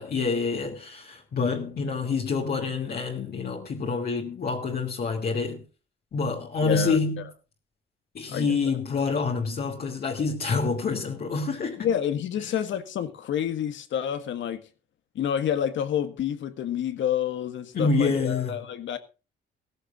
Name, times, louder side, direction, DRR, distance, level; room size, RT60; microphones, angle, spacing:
voice 1, 0.0-5.6 6.1-7.2 8.1-11.9 17.7-18.6, left 4 dB, 50° left, 2.8 m, -27 dB
voice 2, 6.6-7.0 8.3-8.5 11.8-14.6 15.2-19.0, left 9 dB, 75° left, 1.7 m, -28 dB
16.5 x 15.0 x 2.6 m
cardioid pair, 90°, 20 cm